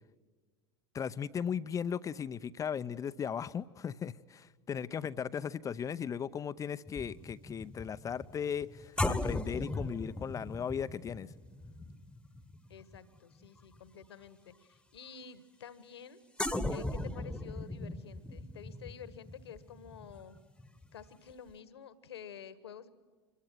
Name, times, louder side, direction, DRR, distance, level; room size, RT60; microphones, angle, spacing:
voice 1, 0.9-11.3, left 7 dB, 25° left, 14 dB, 0.7 m, -37 dB
voice 2, 4.7-5.2 12.7-16.2 16.7-20.4 20.9-22.9, left 8 dB, 70° left, 15 dB, 1.6 m, -50 dB
sound 1, 6.9-13.5 13.8-14.0 16.4-21.0 21.3-21.5, left 2 dB, 5° left, 1.3 m, -38 dB
26.0 x 22.0 x 9.2 m, 1.4 s
figure-of-eight pair, 80°, 14 cm